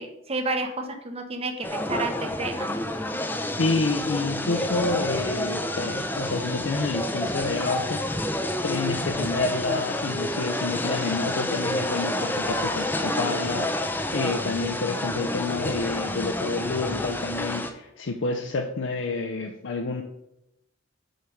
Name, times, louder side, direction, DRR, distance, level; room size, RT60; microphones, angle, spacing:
voice 1, 0.0-2.8, right 2 dB, 30° right, 5 dB, 0.8 m, -31 dB
sound 1, 1.6-17.7, left 1 dB, 10° left, 0.5 m, -29 dB
voice 2, 3.5-8.3 8.6-20.0, left 3 dB, 70° left, 3 dB, 0.6 m, -29 dB
6.5 x 4.5 x 5.1 m, 0.84 s
head